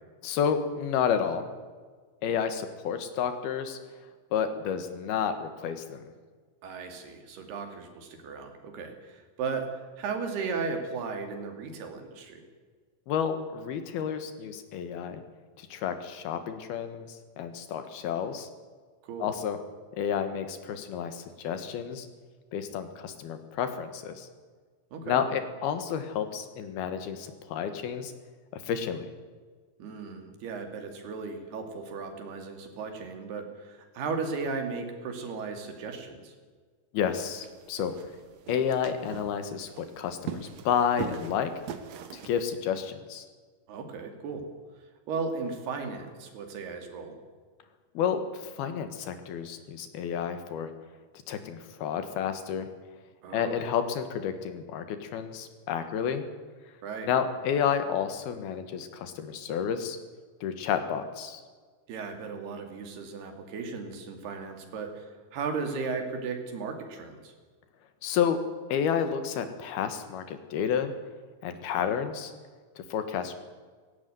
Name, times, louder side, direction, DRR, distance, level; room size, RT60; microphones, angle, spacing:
voice 1, 0.2-1.5 2.2-3.8 4.3-6.1 13.1-15.2 15.6-18.5 19.2-19.6 19.9-22.1 22.5-24.3 25.0-28.1 28.5-29.1 36.9-37.9 38.5-41.5 42.1-43.3 47.9-50.7 51.3-52.7 53.3-56.2 57.1-60.0 60.4-61.4 68.0-68.4 68.7-70.9 71.4-72.3 72.8-73.3, left 8 dB, 80° left, 9 dB, 3.4 m, -30 dB
voice 2, 6.6-9.7 10.0-12.4 19.0-19.3 24.9-25.2 29.8-36.3 43.7-44.4 45.1-47.2 53.2-53.6 56.8-57.1 61.9-67.3, right 4 dB, 90° right, 5 dB, 4.7 m, -36 dB
sound 1, 37.1-42.5, right 7 dB, 60° right, 1.9 m, -41 dB
17.5 x 16.0 x 9.3 m, 1.5 s
omnidirectional pair, 4.5 m